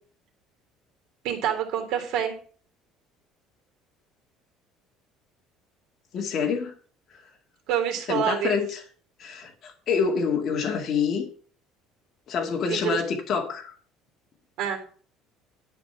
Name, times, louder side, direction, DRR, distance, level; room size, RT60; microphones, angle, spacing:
voice 1, 1.2-2.4 7.7-8.5 12.7-13.0 14.6-14.8, right 9 dB, 60° right, 5 dB, 3.4 m, -27 dB
voice 2, 6.1-6.7 8.1-8.8 9.2-11.3 12.3-13.7, left 6 dB, 35° left, 2 dB, 2.3 m, -26 dB
11.5 x 5.2 x 7.4 m, 0.43 s
cardioid pair, 170°, 0 cm